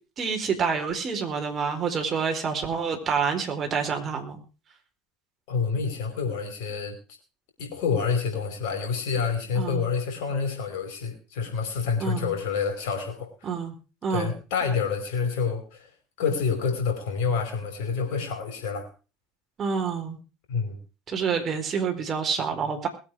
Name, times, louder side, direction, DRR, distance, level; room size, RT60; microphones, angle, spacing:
voice 1, 0.2-4.4 9.5-9.8 12.0-12.3 13.4-13.7 14.0-14.3 19.6-20.2 21.1-22.9, right 6 dB, 35° right, 4 dB, 4.4 m, -28 dB
voice 2, 5.5-7.0 7.6-13.3 14.1-15.9 16.2-18.9 20.5-20.8, left 5 dB, 65° left, 5 dB, 5.2 m, -28 dB
21.0 x 8.8 x 4.8 m, 0.34 s
hypercardioid pair, 70°, 0 cm